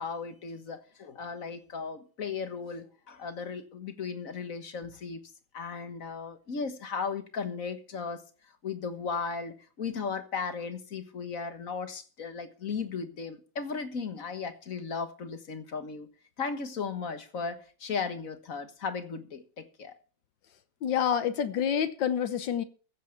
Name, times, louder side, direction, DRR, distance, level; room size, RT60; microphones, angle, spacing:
voice 1, 0.0-5.2 5.5-8.2 8.6-16.1 16.4-20.0, left 5 dB, 50° left, 1.6 m, -36 dB
voice 2, 20.8-22.6, left 8 dB, 80° left, 1.7 m, -27 dB
15.5 x 7.6 x 5.9 m
omnidirectional pair, 2.0 m